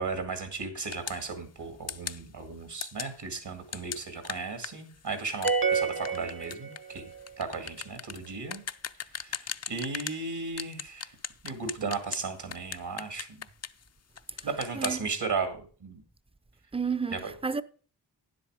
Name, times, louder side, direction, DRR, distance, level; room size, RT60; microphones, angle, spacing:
voice 1, 0.0-7.1 7.4-8.6 9.1-11.2 11.4-13.5 14.4-16.0 17.1-17.3, right 4 dB, 70° right, 2.2 m, -35 dB
sound 1, 0.9-1.2 1.9-2.2 2.8-3.1 3.7-10.2 10.6-12.2 12.5-13.9 14.2-15.0, left 7 dB, 40° left, 0.5 m, -38 dB
sound 2, 5.4-7.2, right 5 dB, 55° right, 1.2 m, -28 dB
voice 2, 14.7-15.1 16.7-17.6, right 5 dB, 15° right, 0.6 m, -31 dB
9.8 x 7.8 x 5.0 m
cardioid pair, 45°, 42 cm